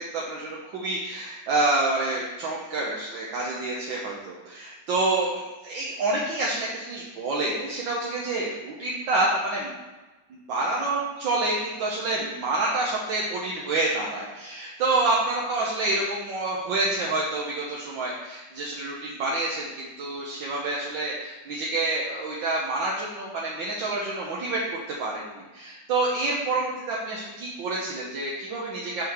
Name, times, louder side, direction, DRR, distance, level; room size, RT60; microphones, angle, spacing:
voice 1, 0.0-5.3 5.6-9.7 10.3-29.0, right 2 dB, 70° right, -4 dB, 1.8 m, -28 dB
5.8 x 5.7 x 6.8 m, 1.2 s
omnidirectional pair, 2.2 m